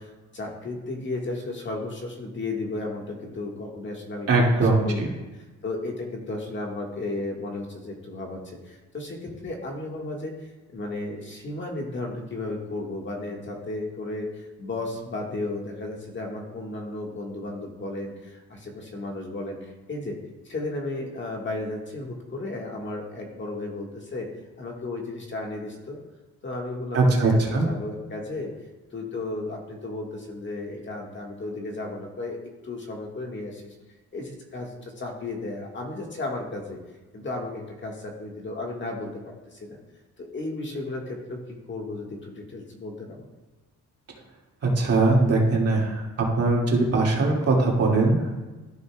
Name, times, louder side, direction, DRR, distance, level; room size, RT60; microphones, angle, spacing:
voice 1, 0.0-5.1 5.6-19.6 19.9-20.2 20.4-24.3 24.6-26.0 26.4-28.5 28.9-32.4 32.6-33.7 34.1-36.8 37.1-39.8 40.2-43.3, left 2 dB, 40° left, 0 dB, 1.6 m, -34 dB
voice 2, 4.3-5.1 26.9-27.7 44.6-48.3, right 2 dB, 55° right, -2 dB, 2.2 m, -21 dB
13.5 x 5.3 x 2.3 m, 1.2 s
cardioid pair, 90°, 30 cm